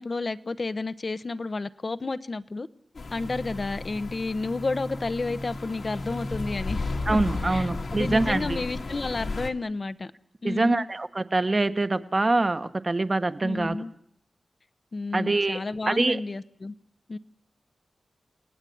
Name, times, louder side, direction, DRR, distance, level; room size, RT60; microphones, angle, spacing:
voice 1, 0.0-2.7 3.1-7.2 7.5-10.1 10.4-10.9 13.4-13.9 14.9-16.7 17.1-17.2, left 3 dB, 45° left, 13 dB, 1.0 m, -31 dB
sound 1, 3.0-9.5, left 2 dB, 70° left, 2.3 m, -33 dB
voice 2, 7.1-8.6 10.4-13.8 15.1-15.6 15.9-16.2, right 2 dB, 35° right, 10 dB, 1.2 m, -24 dB
29.5 x 18.5 x 8.7 m, 0.71 s
wide cardioid pair, 90°, 0 cm